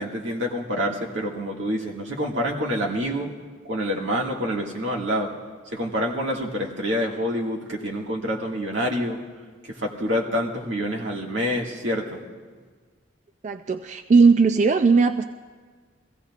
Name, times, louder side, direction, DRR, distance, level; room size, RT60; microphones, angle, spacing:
voice 1, 0.0-3.3 3.6-5.3 5.7-9.2 9.6-12.3, equal, 85° right, -1 dB, 1.9 m, -27 dB
voice 2, 13.4-15.2, right 4 dB, 40° right, 8 dB, 0.3 m, -18 dB
23.0 x 16.0 x 2.5 m, 1.5 s
head